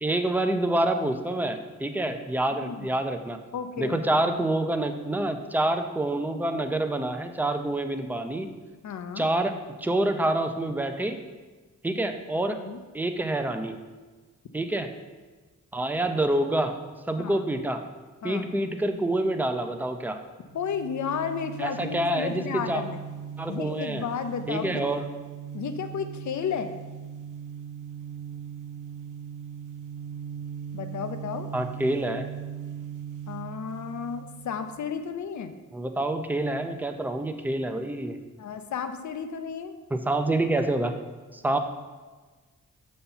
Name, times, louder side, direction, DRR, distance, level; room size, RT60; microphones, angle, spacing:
voice 1, 0.0-3.4 3.8-8.5 9.2-9.5 9.8-11.2 11.8-12.6 12.9-13.7 14.5-14.9 15.7-16.8 17.1-17.8 18.2-20.2 21.6-22.8 23.4-24.0 24.5-25.1 31.5-32.3 35.7-38.2 39.9-41.0 41.3-41.6, right 1 dB, 5° right, 6 dB, 0.5 m, -27 dB
voice 2, 3.5-4.2 8.8-9.3 12.5-12.8 17.2-17.5 18.2-18.4 20.5-23.0 23.5-24.9 25.5-26.7 30.7-31.5 33.3-35.5 38.4-39.8, left 7 dB, 70° left, 9 dB, 0.6 m, -33 dB
sound 1, 20.5-35.0, right 8 dB, 90° right, 0.6 m, -39 dB
6.7 x 4.3 x 5.5 m, 1.3 s
cardioid pair, 80°, 30 cm